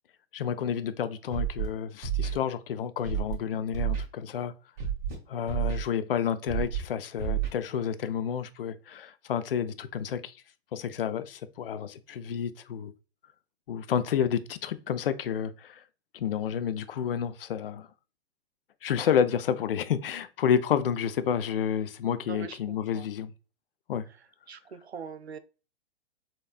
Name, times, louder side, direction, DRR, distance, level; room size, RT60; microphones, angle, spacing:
voice 1, 0.3-4.5 5.3-10.3 10.7-12.9 13.7-15.8 16.1-17.9 18.8-23.3 23.9-24.1, left 8 dB, 60° left, 0.5 m, -30 dB
Scratching (performance technique), 1.3-1.7 2.0-2.3 3.0-3.3 3.7-4.0 4.8-5.1 5.5-5.8 6.5-6.8 7.2-7.5, right 10 dB, 30° right, 2.0 m, -29 dB
voice 2, 22.3-23.1 24.5-25.4, right 6 dB, 85° right, 0.5 m, -42 dB
4.2 x 3.1 x 2.3 m
figure-of-eight pair, 105°, 31 cm